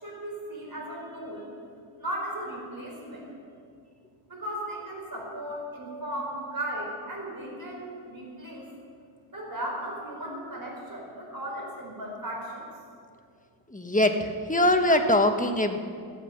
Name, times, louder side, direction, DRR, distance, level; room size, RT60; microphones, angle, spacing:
voice 1, 0.0-1.5 2.0-3.2 4.3-8.6 9.3-12.6, right 1 dB, 45° right, -2 dB, 4.7 m, -36 dB
voice 2, 13.7-15.8, left 1 dB, 15° left, 5 dB, 1.1 m, -23 dB
14.5 x 9.3 x 7.9 m, 2.3 s
wide cardioid pair, 60°, 49 cm